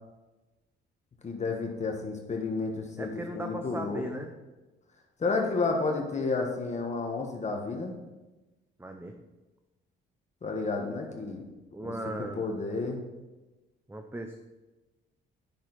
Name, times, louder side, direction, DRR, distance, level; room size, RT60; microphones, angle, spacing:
voice 1, 1.2-3.1 3.3-4.2 5.2-7.9 10.4-11.4 11.8-11.9 12.3-13.0, left 3 dB, 35° left, 2 dB, 1.5 m, -31 dB
voice 2, 3.0-4.3 8.8-9.1 11.7-12.5 13.9-14.3, right 1 dB, 10° right, 4 dB, 0.8 m, -37 dB
10.0 x 6.4 x 4.1 m, 1.1 s
cardioid pair, 90°, 20 cm